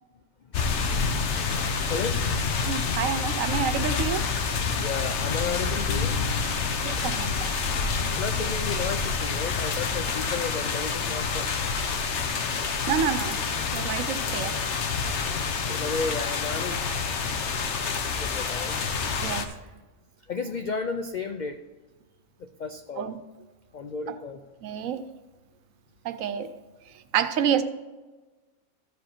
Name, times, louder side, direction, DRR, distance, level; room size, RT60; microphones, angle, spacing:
sound 1, 0.5-19.4, left 5 dB, 60° left, 1.0 m, -28 dB
voice 1, 2.7-4.3 6.8-7.3 12.9-13.4 13.7-14.6 19.2-19.5 23.0-23.2 24.1-24.2 24.6-25.0 26.0-26.5 27.1-27.6, right 8 dB, 75° right, 11 dB, 1.0 m, -28 dB
voice 2, 4.8-6.7 8.2-11.5 15.7-18.8 20.3-21.6 22.4-23.1 23.7-24.4, left 4 dB, 90° left, 6 dB, 0.4 m, -33 dB
13.5 x 5.1 x 4.4 m, 1.2 s
omnidirectional pair, 1.5 m